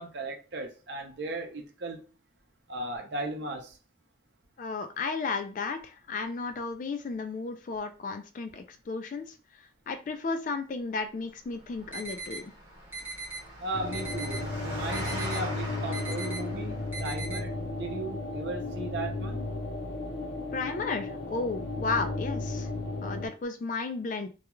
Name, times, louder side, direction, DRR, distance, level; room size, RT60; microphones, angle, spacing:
voice 1, 0.0-2.0 2.7-3.8 13.6-19.4, right 2 dB, 60° right, 0.6 m, -36 dB
voice 2, 4.6-12.5 20.5-22.7 23.0-24.3, left 4 dB, 45° left, 0.3 m, -34 dB
Engine, 11.5-17.1, right 1 dB, 35° right, 1.0 m, -41 dB
sound 1, 11.9-12.4 12.9-13.4 13.9-14.4 14.9-15.4 15.9-16.4 16.9-17.4, right 3 dB, 10° right, 0.7 m, -38 dB
sound 2, 13.7-23.3, left 2 dB, 65° left, 0.8 m, -34 dB
2.3 x 2.3 x 2.9 m
head